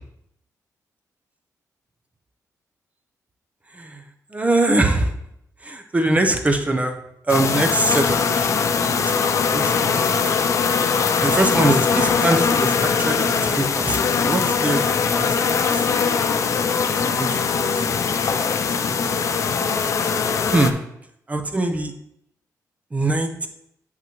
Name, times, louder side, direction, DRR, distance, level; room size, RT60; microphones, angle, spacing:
voice 1, 3.7-4.0 4.3-5.1 5.6-7.0 7.2-10.2 10.6-15.3 15.7-15.8 16.9-17.7 18.2-19.5 20.5-20.8 21.3-21.9 22.9-23.5, right 2 dB, 20° right, 5 dB, 0.7 m, -23 dB
sound 1, 7.3-20.7, left 6 dB, 55° left, 0.5 m, -21 dB
7.4 x 5.8 x 3.0 m, 0.76 s
cardioid pair, 100°, 6 cm